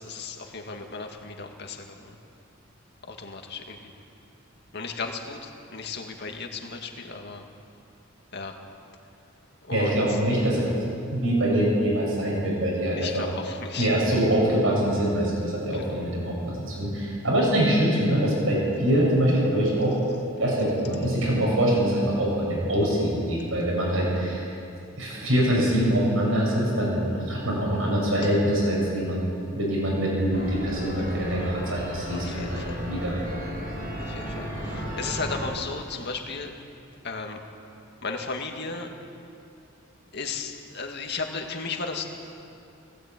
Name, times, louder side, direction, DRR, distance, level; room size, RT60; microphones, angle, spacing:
voice 1, 0.0-2.2 3.1-3.9 4.7-7.4 8.3-8.5 9.6-10.2 13.0-13.9 15.7-16.0 32.1-32.8 34.0-36.5 37.0-37.4 38.0-38.9 40.1-42.1, left 4 dB, 55° left, 3 dB, 2.1 m, -35 dB
voice 2, 9.7-10.8 11.1-13.2 13.8-19.9 20.4-24.5 25.0-29.2 29.5-33.2, right 1 dB, 75° right, -3 dB, 7.4 m, -24 dB
sound 1, 30.3-35.5, equal, 50° right, 5.8 m, -34 dB
18.5 x 17.0 x 9.1 m, 2.5 s
head